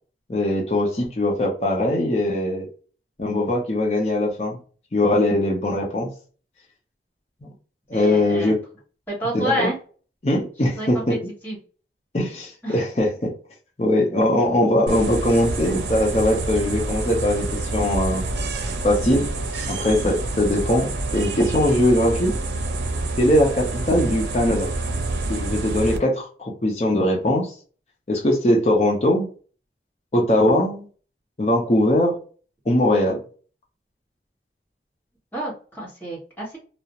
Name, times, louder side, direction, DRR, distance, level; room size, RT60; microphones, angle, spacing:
voice 1, 0.3-2.7 3.2-4.6 4.9-6.1 7.9-8.6 9.3-9.7 10.2-11.3 12.1-13.3 13.8-18.2 18.8-19.3 19.7-22.3 23.2-24.7 25.3-27.5 28.1-29.3 30.1-30.8 31.4-32.2 32.7-33.2, left 1 dB, 35° left, 0.5 m, -21 dB
voice 2, 7.9-8.5 9.1-9.8 10.8-11.2 11.4-11.6 12.6-12.8 35.3-36.6, right 1 dB, 10° left, 1.0 m, -28 dB
sound 1, 14.9-26.0, right 2 dB, 85° right, 0.5 m, -27 dB
2.4 x 2.0 x 2.8 m
head